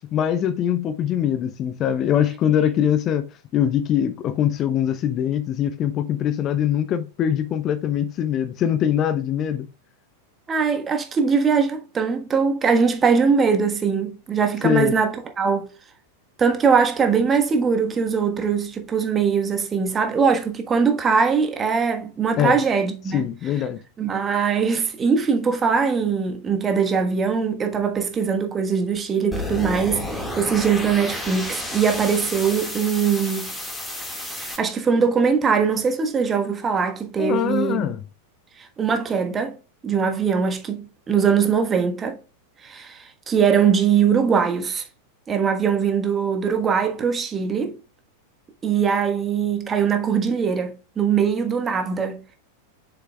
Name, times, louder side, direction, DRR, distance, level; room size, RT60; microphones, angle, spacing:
voice 1, 0.1-3.3 3.5-9.7 14.6-14.9 22.4-22.6 23.1-23.8 37.2-38.0, left 9 dB, 30° left, 0.5 m, -22 dB
voice 2, 10.5-15.7 16.4-23.2 24.0-33.5 34.3-37.9 38.8-39.6 39.8-42.2 42.6-44.8 45.3-47.8 48.6-52.4, right 6 dB, 20° right, 1.3 m, -21 dB
sound 1, 29.3-34.6, left 1 dB, 10° left, 1.9 m, -31 dB
7.9 x 6.6 x 2.3 m
figure-of-eight pair, 90°, 0 cm